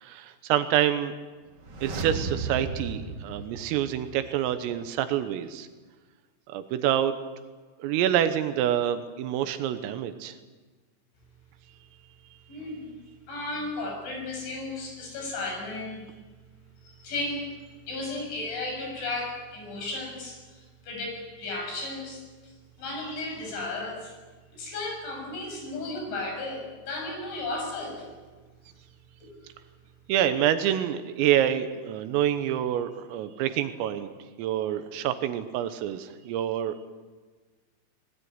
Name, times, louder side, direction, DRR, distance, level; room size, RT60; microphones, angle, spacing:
voice 1, 0.0-1.2 1.8-5.7 6.5-7.1 7.8-10.4 30.1-34.1 34.4-36.9, right 11 dB, 85° right, 10 dB, 3.7 m, -27 dB
sound 1, 1.5-4.4 4.7-4.8, right 3 dB, 60° right, 1.0 m, -35 dB
voice 2, 12.5-13.0 13.3-16.0 16.8-17.5 17.9-20.4 20.8-24.1 24.5-28.1 29.2-29.3 30.2-30.3, left 2 dB, 60° left, 1 dB, 9.5 m, -34 dB
24.5 x 20.0 x 9.7 m, 1.4 s
omnidirectional pair, 6.0 m